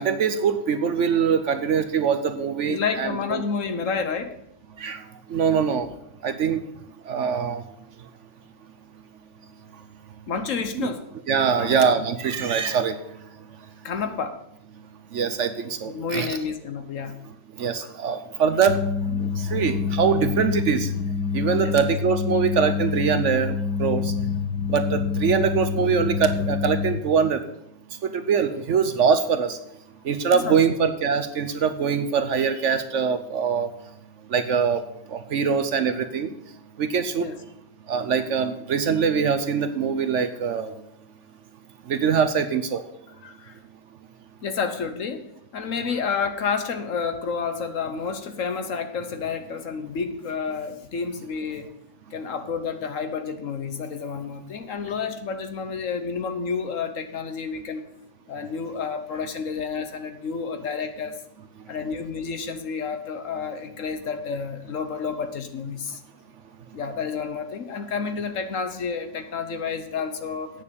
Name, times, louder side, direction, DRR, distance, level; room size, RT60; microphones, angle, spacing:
voice 1, 0.0-3.4 4.8-5.0 5.3-5.9 6.2-6.6 7.1-7.6 10.8-10.9 11.3-13.0 15.1-16.4 17.6-18.8 19.4-20.9 21.3-23.5 23.8-24.1 24.7-27.4 28.0-29.6 30.0-33.7 34.3-34.8 35.1-36.3 36.8-37.3 37.9-40.7 41.9-42.8, right 6 dB, 60° right, 9 dB, 1.0 m, -23 dB
voice 2, 2.7-4.3 10.3-11.1 11.5-12.0 13.8-14.4 15.8-17.2 21.6-21.8 30.3-30.8 37.2-37.4 43.2-43.6 44.4-45.2 45.5-51.7 52.1-57.8 58.3-61.2 61.7-66.0 66.7-70.5, left 5 dB, 60° left, 8 dB, 1.3 m, -30 dB
sound 1, 18.7-27.0, left 6 dB, 85° left, 1.5 m, -26 dB
9.0 x 6.5 x 7.0 m, 0.77 s
omnidirectional pair, 1.6 m